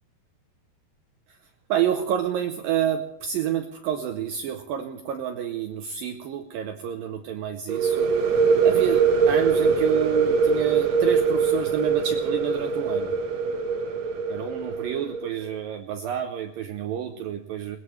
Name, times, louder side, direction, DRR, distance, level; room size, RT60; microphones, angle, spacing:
voice 1, 1.7-8.1 8.6-13.2 14.3-17.8, right 9 dB, 85° right, 7 dB, 2.0 m, -29 dB
sound 1, 7.7-15.3, right 5 dB, 55° right, 2.0 m, -22 dB
21.5 x 20.0 x 3.2 m, 0.81 s
omnidirectional pair, 5.0 m